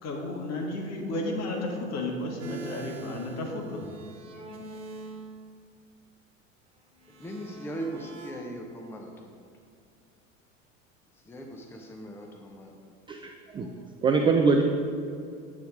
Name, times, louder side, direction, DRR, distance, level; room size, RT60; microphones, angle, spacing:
voice 1, 0.0-3.8, left 2 dB, 40° left, 0 dB, 1.7 m, -33 dB
sound 1, 2.4-5.3 7.0-8.3, right 3 dB, 65° right, 1.3 m, -43 dB
voice 2, 7.2-9.3 11.2-12.7, right 1 dB, 5° left, 1 dB, 0.8 m, -39 dB
voice 3, 13.1-13.7 14.0-14.6, right 4 dB, 15° right, 3 dB, 0.3 m, -23 dB
9.2 x 3.6 x 6.3 m, 2.4 s
figure-of-eight pair, 80°, 39 cm